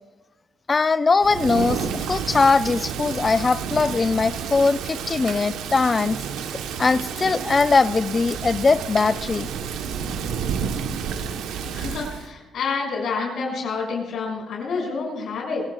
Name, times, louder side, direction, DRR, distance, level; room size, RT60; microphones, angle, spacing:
voice 1, 0.7-6.2 6.8-9.5, left 4 dB, 30° left, 14 dB, 0.6 m, -20 dB
Thunder / Rain, 1.2-12.3, right 7 dB, 90° right, 1.1 m, -30 dB
voice 2, 11.7-15.6, left 4 dB, 70° left, -1 dB, 6.5 m, -28 dB
26.5 x 16.5 x 2.4 m, 1.2 s
cardioid pair, 90°, 0 cm